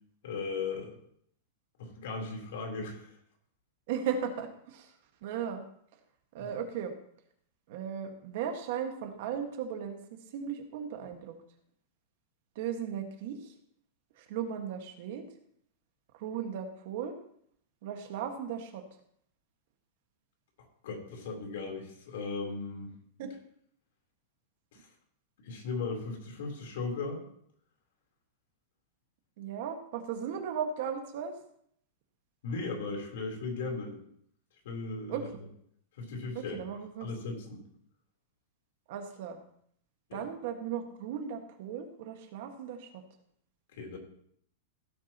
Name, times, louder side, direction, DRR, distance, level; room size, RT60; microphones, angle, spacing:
voice 1, 0.2-1.0 1.8-3.2 6.4-6.5 20.8-22.9 24.7-24.8 25.4-27.2 32.4-34.0 34.6-35.3 36.0-36.6 37.0-37.6 40.1-40.3 43.7-44.0, left 4 dB, 65° left, 2 dB, 3.6 m, -37 dB
voice 2, 3.9-4.9 5.2-5.6 6.3-6.9 7.7-10.0 10.3-11.3 12.5-13.5 14.2-15.2 16.2-17.2 17.8-18.8 23.2-23.3 29.4-31.4 35.1-35.2 36.3-37.1 38.9-39.4 40.1-43.0, right 8 dB, 50° right, 5 dB, 1.6 m, -36 dB
16.5 x 8.7 x 3.0 m, 0.67 s
supercardioid pair, 170°, 0 cm